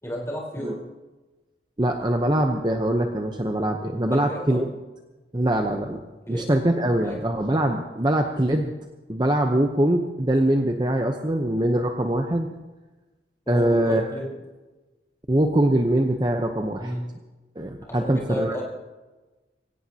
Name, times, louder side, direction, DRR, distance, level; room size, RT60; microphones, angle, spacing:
voice 1, 0.0-0.8 4.1-4.7 6.3-6.5 7.0-7.3 13.5-14.4 16.8-17.1 17.9-18.6, equal, 15° left, -3 dB, 4.1 m, -32 dB
voice 2, 1.8-4.7 5.3-6.0 6.3-8.7 9.1-12.5 13.5-14.0 15.3-16.9 17.6-18.6, right 1 dB, 25° right, 3 dB, 0.8 m, -23 dB
23.5 x 17.0 x 2.9 m, 1.2 s
head